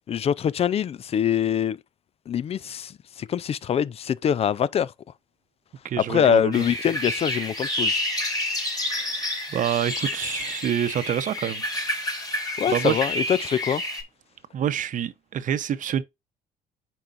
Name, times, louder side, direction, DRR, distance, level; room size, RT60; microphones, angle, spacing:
voice 1, 0.1-1.8 2.3-2.9 3.2-4.9 6.1-8.0 12.6-13.8, left 8 dB, 35° left, 0.4 m, -24 dB
voice 2, 5.8-6.6 8.9-9.2 9.5-11.6 12.7-13.0 14.5-16.0, right 9 dB, 50° right, 0.8 m, -27 dB
sound 1, 6.5-14.0, left 1 dB, 20° left, 3.4 m, -29 dB
9.0 x 4.6 x 2.5 m
cardioid pair, 110°, 17 cm